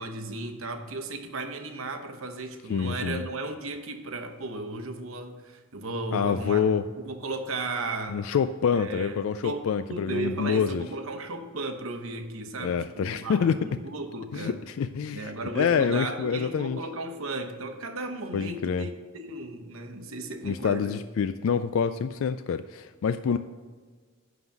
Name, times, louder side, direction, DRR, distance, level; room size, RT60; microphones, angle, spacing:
voice 1, 0.0-6.7 7.0-8.2 8.7-14.6 15.1-21.0, right 2 dB, 75° right, 6 dB, 1.0 m, -35 dB
voice 2, 2.7-3.2 6.1-6.9 8.1-10.8 12.6-13.6 14.3-16.8 18.3-18.9 20.4-23.4, left 6 dB, 75° left, 11 dB, 0.3 m, -27 dB
11.0 x 4.0 x 7.1 m, 1.5 s
head